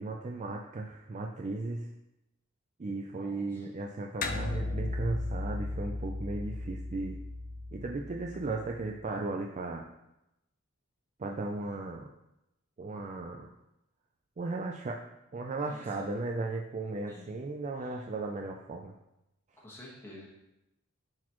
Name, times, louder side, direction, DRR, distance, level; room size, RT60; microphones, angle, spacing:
voice 1, 0.0-1.9 2.8-7.2 7.7-9.9 11.2-12.1 12.8-13.5 14.4-15.0 15.3-18.9, right 3 dB, 35° right, 1 dB, 0.4 m, -36 dB
voice 2, 3.1-3.6 15.7-16.1 17.1-17.3 17.8-17.9 19.6-20.3, left 1 dB, 10° left, -5 dB, 1.4 m, -50 dB
sound 1, 4.2-9.0, left 2 dB, 40° left, 0.5 m, -36 dB
10.5 x 4.1 x 3.0 m, 0.89 s
head